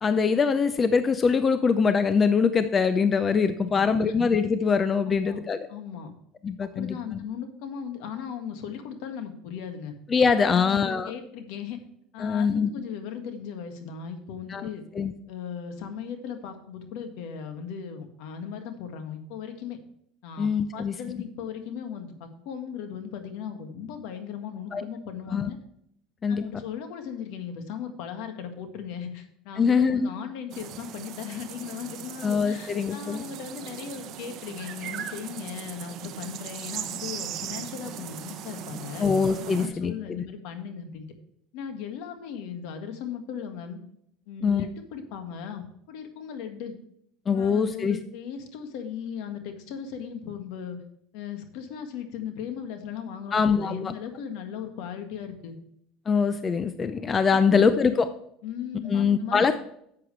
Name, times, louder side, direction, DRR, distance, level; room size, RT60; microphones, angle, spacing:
voice 1, 0.0-5.6 6.4-7.2 10.1-11.1 12.2-12.7 14.5-14.6 15.0-15.1 20.4-20.9 24.7-24.8 25.3-25.5 26.2-26.4 29.6-30.1 32.2-33.2 39.0-39.9 44.4-44.6 47.3-48.0 53.3-53.9 56.1-58.1 58.9-59.6, left 5 dB, 25° left, 11 dB, 0.5 m, -23 dB
voice 2, 3.6-4.1 5.1-5.4 5.7-6.1 6.6-9.9 10.4-11.8 12.1-14.8 15.3-19.8 20.2-25.6 26.3-39.1 39.6-41.1 41.5-43.8 44.3-46.8 47.3-50.8 51.1-55.6 57.3-58.0 58.4-59.6, left 7 dB, 70° left, 7 dB, 1.7 m, -37 dB
sound 1, 30.5-39.7, right 10 dB, 50° right, 0.9 m, -38 dB
11.0 x 7.7 x 3.2 m, 0.71 s
cardioid pair, 135°, 0 cm